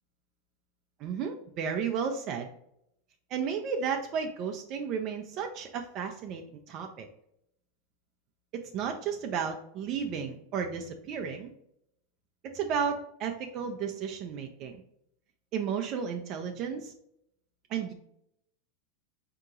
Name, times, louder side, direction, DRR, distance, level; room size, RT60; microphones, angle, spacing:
voice 1, 1.0-2.5 3.3-7.1 8.5-11.5 12.4-14.8 15.5-16.9 17.7-17.9, right 7 dB, 45° right, 4 dB, 0.5 m, -33 dB
3.7 x 2.8 x 3.6 m, 0.75 s
supercardioid pair, 120°, 0 cm